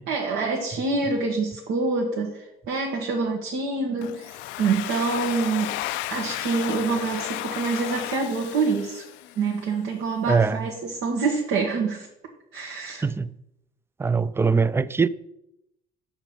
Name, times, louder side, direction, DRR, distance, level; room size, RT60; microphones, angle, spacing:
voice 1, 0.0-5.7 6.1-9.1 9.4-12.1 12.5-13.0, right 4 dB, 75° right, 1.4 m, -26 dB
Domestic sounds home sounds, 4.0-9.6, left 14 dB, 80° left, 0.5 m, -33 dB
voice 2, 10.3-10.7 13.0-13.3 14.0-15.1, right 5 dB, 15° right, 0.4 m, -22 dB
7.0 x 6.0 x 5.2 m
supercardioid pair, 85°, 19 cm